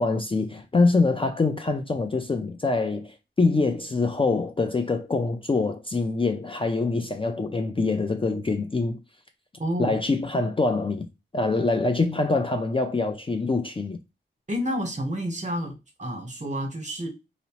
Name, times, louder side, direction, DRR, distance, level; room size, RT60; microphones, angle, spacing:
voice 1, 0.0-9.0 9.8-11.1 11.3-14.0, left 3 dB, 25° left, 0.3 m, -24 dB
voice 2, 9.6-9.9 14.5-17.1, equal, 35° right, 1.0 m, -29 dB
2.6 x 2.0 x 2.9 m
wide cardioid pair, 65°, 21 cm